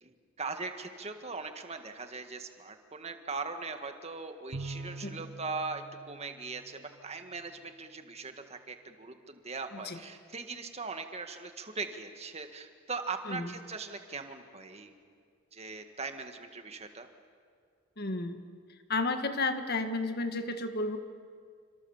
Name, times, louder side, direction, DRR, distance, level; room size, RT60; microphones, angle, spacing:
voice 1, 0.0-14.9 15.5-17.1, right 4 dB, 30° right, 6 dB, 1.8 m, -40 dB
Bowed string instrument, 4.5-7.2, right 2 dB, 70° right, 0.9 m, -44 dB
voice 2, 18.0-18.4 18.9-21.0, left 2 dB, 50° left, 7 dB, 1.8 m, -32 dB
28.5 x 26.0 x 7.3 m, 2.1 s
head